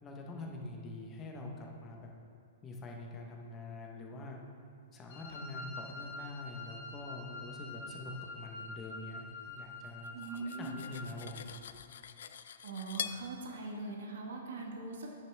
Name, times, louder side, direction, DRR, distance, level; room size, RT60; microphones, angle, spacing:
voice 1, 0.0-2.1 2.6-4.4 4.9-11.4, left 2 dB, 20° left, 0 dB, 0.9 m, -45 dB
Wind instrument woodwind instrument, 5.1-11.1, left 2 dB, 45° left, 1.3 m, -46 dB
Cutlery silverware, 10.0-13.2, left 8 dB, 70° left, 0.3 m, -44 dB
voice 2, 10.1-10.7 12.6-15.1, right 3 dB, 75° right, 0 dB, 1.3 m, -41 dB
9.8 x 6.5 x 3.3 m, 2.4 s
hypercardioid pair, 165°, 0 cm